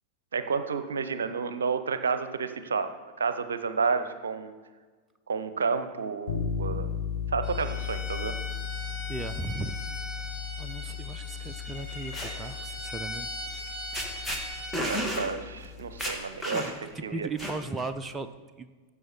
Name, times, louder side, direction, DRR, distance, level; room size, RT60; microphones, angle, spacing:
voice 1, 0.3-4.5 5.3-6.9 7.3-8.3 14.8-17.3, right 5 dB, 70° right, 11 dB, 0.7 m, -31 dB
sound 1, 6.3-16.1, left 8 dB, 60° left, 1.2 m, -36 dB
Bowed string instrument, 7.4-14.8, left 1 dB, 15° left, 3.0 m, -40 dB
voice 2, 9.1-9.8 10.6-13.3 17.0-18.3 18.6-18.7, right 3 dB, 15° right, 9 dB, 0.5 m, -36 dB
sound 2, 11.8-12.3 13.6-13.7 13.9-14.4 14.7-15.3 15.6-15.7 16.0-16.9 17.4-17.9, equal, ahead, 1.7 m, -32 dB
15.0 x 7.2 x 4.4 m, 1.4 s
figure-of-eight pair, 90°, 0 cm